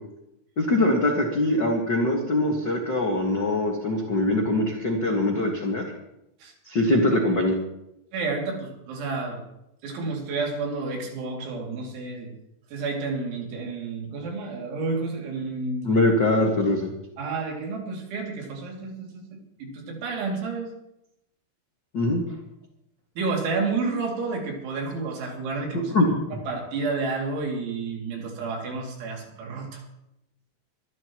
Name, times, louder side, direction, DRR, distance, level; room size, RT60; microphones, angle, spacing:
voice 1, 0.6-5.8 6.7-7.6 15.8-16.9 21.9-22.2 25.9-26.1, left 1 dB, 70° left, 0 dB, 1.0 m, -22 dB
voice 2, 8.1-9.4 9.8-12.3 12.7-15.9 17.2-20.7 23.2-29.8, right 3 dB, 85° right, 0 dB, 5.2 m, -30 dB
24.5 x 12.5 x 3.1 m, 0.84 s
omnidirectional pair, 5.2 m